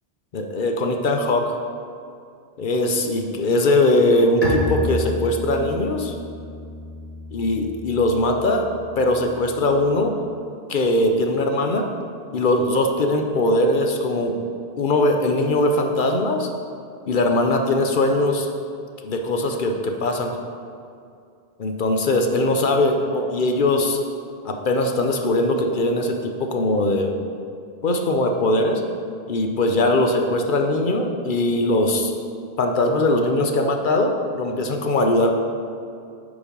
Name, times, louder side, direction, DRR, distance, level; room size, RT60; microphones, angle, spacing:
voice 1, 0.3-1.6 2.6-6.1 7.3-8.7 9.0-10.2 10.7-11.8 12.3-14.4 14.8-16.5 17.1-18.5 19.0-20.4 21.6-24.0 24.4-27.1 27.8-28.8 29.3-32.1 32.6-35.3, left 2 dB, 50° left, 3 dB, 0.8 m, -21 dB
Bowed string instrument, 4.4-10.0, left 1 dB, 35° left, 1.4 m, -31 dB
8.6 x 5.0 x 5.2 m, 2.4 s
omnidirectional pair, 1.2 m